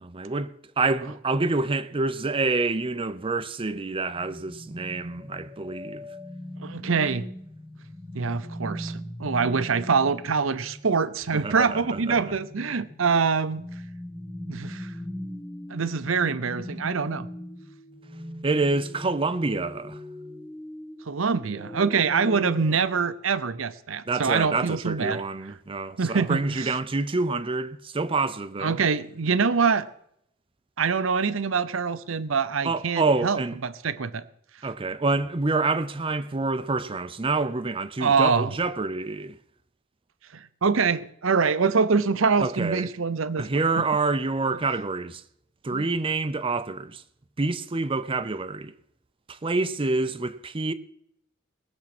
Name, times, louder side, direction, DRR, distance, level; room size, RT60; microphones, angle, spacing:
voice 1, 0.0-6.1 11.3-12.2 18.4-20.0 24.1-28.8 32.6-33.6 34.6-39.4 42.4-42.9 43.4-45.2 45.6-47.0 47.4-48.7 49.3-50.7, right 3 dB, 25° right, 0.6 m, -27 dB
sound 1, 4.1-22.8, left 1 dB, 5° left, 0.8 m, -40 dB
voice 2, 6.6-7.3 8.1-13.6 14.5-14.9 15.7-17.3 21.1-25.2 26.0-26.7 28.6-29.9 30.8-34.2 38.0-38.5 40.3-43.5 45.7-45.8, right 5 dB, 75° right, 0.7 m, -25 dB
19.5 x 7.2 x 6.0 m
head